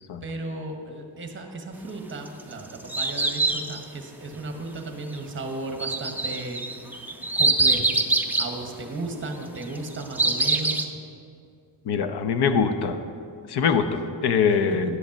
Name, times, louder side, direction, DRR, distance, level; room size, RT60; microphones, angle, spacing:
voice 1, 0.2-6.6 7.2-8.0 8.4-10.9, right 2 dB, 25° right, 4 dB, 1.1 m, -35 dB
sound 1, 2.3-3.8 5.8-8.5 9.6-10.8, right 3 dB, 5° right, 0.3 m, -24 dB
voice 2, 11.8-13.0 13.5-15.0, left 6 dB, 60° left, 9 dB, 0.7 m, -23 dB
11.0 x 5.2 x 7.1 m, 2.3 s
cardioid pair, 155°, 45 cm